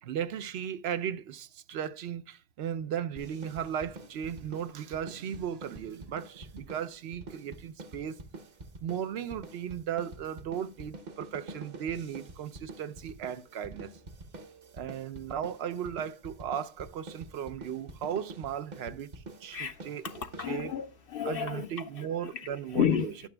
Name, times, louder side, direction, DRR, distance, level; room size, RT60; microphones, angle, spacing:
voice 1, 0.0-8.2 8.8-13.9 14.7-19.1 19.4-20.0 20.5-20.7 21.2-23.1, right 9 dB, 75° right, 0.8 m, -36 dB
sound 1, 3.2-20.9, right 2 dB, 45° right, 0.9 m, -47 dB
voice 2, 19.5-23.3, left 8 dB, 65° left, 0.7 m, -33 dB
17.5 x 5.9 x 2.2 m
omnidirectional pair, 1.1 m